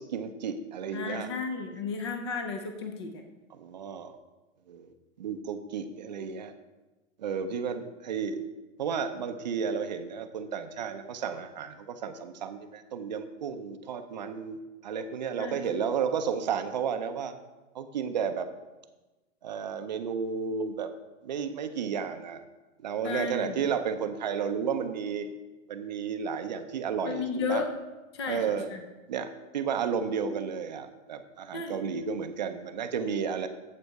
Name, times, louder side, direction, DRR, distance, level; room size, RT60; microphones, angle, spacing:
voice 1, 0.0-1.3 3.5-4.2 4.7-4.9 5.2-6.5 7.2-8.4 8.8-14.6 14.8-17.3 17.7-18.5 19.4-20.9 21.2-22.4 22.8-25.3 25.7-27.6 28.3-28.7 29.1-33.5, right 6 dB, 35° right, 8 dB, 0.5 m, -32 dB
voice 2, 0.9-3.2 15.4-15.6 23.0-23.6 27.0-27.7 28.1-28.4 28.7-28.8 31.5-31.8, left 4 dB, 20° left, 5 dB, 0.4 m, -33 dB
8.0 x 7.5 x 4.6 m, 1.1 s
hypercardioid pair, 175°, 38 cm